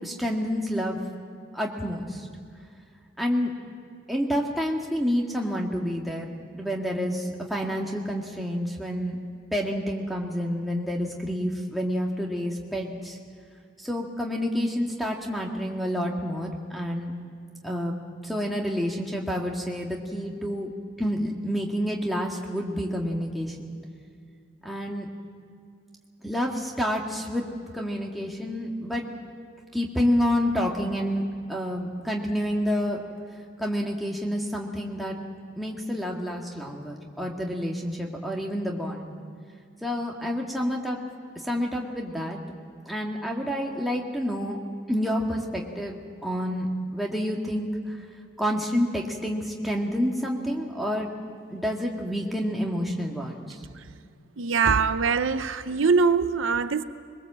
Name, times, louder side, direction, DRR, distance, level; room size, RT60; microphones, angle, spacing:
voice 1, 0.0-1.0 1.5-2.3 3.2-3.5 4.1-9.2 9.5-13.2 13.8-17.1 17.6-17.9 18.2-20.7 21.0-23.7 24.6-25.1 26.2-27.4 27.7-29.0 29.7-33.0 33.6-35.1 35.6-39.2 39.8-41.0 41.4-42.4 42.9-44.6 44.9-48.0 48.4-51.1 51.5-53.6, equal, ahead, -2 dB, 2.0 m, -28 dB
voice 2, 54.4-56.8, right 5 dB, 90° right, 11 dB, 0.8 m, -22 dB
22.0 x 22.0 x 7.5 m, 2.4 s
head